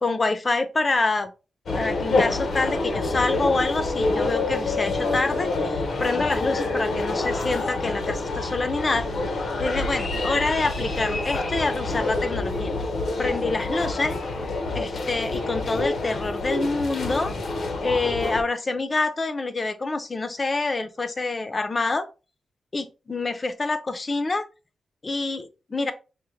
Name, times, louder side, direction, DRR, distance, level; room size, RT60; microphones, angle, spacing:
voice 1, 0.0-1.3 1.7-9.1 9.6-12.7 13.2-14.2 14.7-17.3 17.8-22.1 22.7-24.5 25.0-25.9, left 3 dB, 35° left, 0.5 m, -26 dB
sound 1, 1.7-18.4, left 2 dB, 65° left, 0.7 m, -27 dB
5.0 x 2.2 x 3.1 m
cardioid pair, 95°, 0 cm